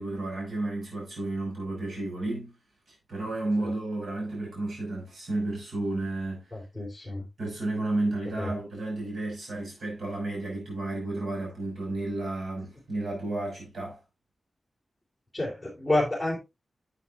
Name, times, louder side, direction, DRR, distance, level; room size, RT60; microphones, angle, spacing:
voice 1, 0.0-2.6 2.9-6.5 7.4-14.0, right 2 dB, 70° right, 5.8 m, -32 dB
voice 2, 6.5-7.3 8.4-8.5 15.3-16.4, left 2 dB, ahead, 3.8 m, -29 dB
11.0 x 8.3 x 2.5 m
wide cardioid pair, 165°, 0 cm